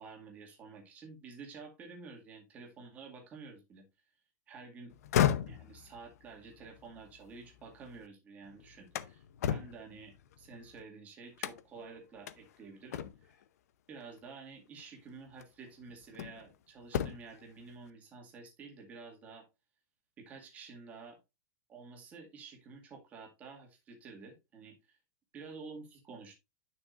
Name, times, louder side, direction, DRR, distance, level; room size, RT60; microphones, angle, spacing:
voice 1, 0.0-3.8 4.5-4.9 5.5-13.4 13.9-19.5 20.2-21.2 21.7-25.0 25.3-26.3, right 4 dB, 15° right, 2.0 m, -50 dB
sound 1, 4.9-8.0 8.4-10.8 11.4-11.9 12.3-12.4 12.9-13.4 14.7-14.8 15.4-16.5 16.8-17.4, left 10 dB, 60° left, 0.7 m, -35 dB
9.9 x 6.0 x 2.5 m
supercardioid pair, 180°, 9 cm